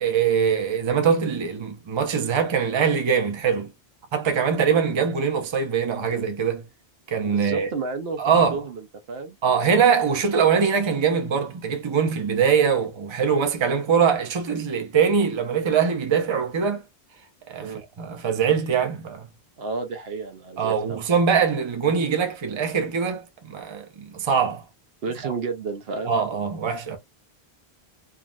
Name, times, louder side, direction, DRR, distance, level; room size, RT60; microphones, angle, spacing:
voice 1, 0.0-3.7 4.1-6.6 7.1-7.7 8.2-8.6 9.4-16.8 17.5-19.3 20.6-24.6 26.0-27.0, right 6 dB, 35° right, 0.6 m, -22 dB
voice 2, 7.3-8.8 9.1-9.4 17.6-17.8 19.6-21.0 25.0-26.1, right 4 dB, 70° right, 0.9 m, -31 dB
3.6 x 2.0 x 2.3 m
omnidirectional pair, 1.0 m